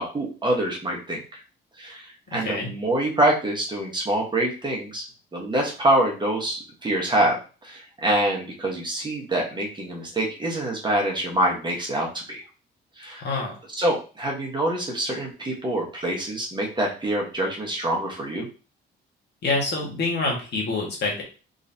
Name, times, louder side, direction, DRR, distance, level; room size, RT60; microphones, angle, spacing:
voice 1, 0.0-1.4 1.8-5.0 5.3-12.4 13.0-13.2 13.8-18.5, right 1 dB, 25° right, -2 dB, 1.4 m, -25 dB
voice 2, 13.2-13.5 19.4-21.2, left 3 dB, 55° left, -1 dB, 1.6 m, -26 dB
3.8 x 3.2 x 2.8 m, 0.34 s
cardioid pair, 90°, 20 cm